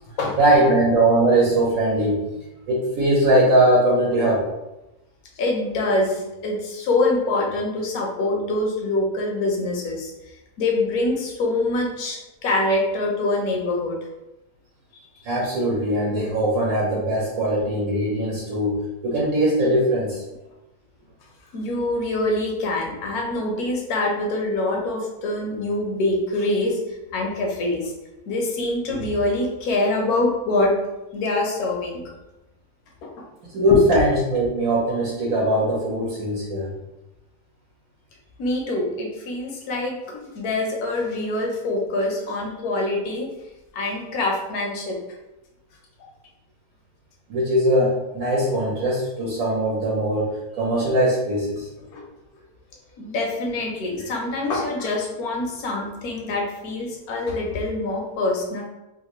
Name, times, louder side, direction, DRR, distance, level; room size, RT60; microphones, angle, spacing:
voice 1, 0.4-2.2 2.7-4.5 15.2-18.8 19.0-20.2 33.5-36.7 47.3-51.7 55.7-55.8, right 1 dB, 70° right, -6 dB, 1.2 m, -20 dB
voice 2, 5.4-10.1 10.6-14.0 21.5-26.8 27.1-27.9 28.3-30.7 31.1-32.0 38.4-43.3 43.7-45.0 51.9-52.0 53.0-58.6, left 2 dB, 80° left, 0 dB, 1.2 m, -25 dB
3.3 x 2.5 x 3.0 m, 0.97 s
omnidirectional pair, 1.6 m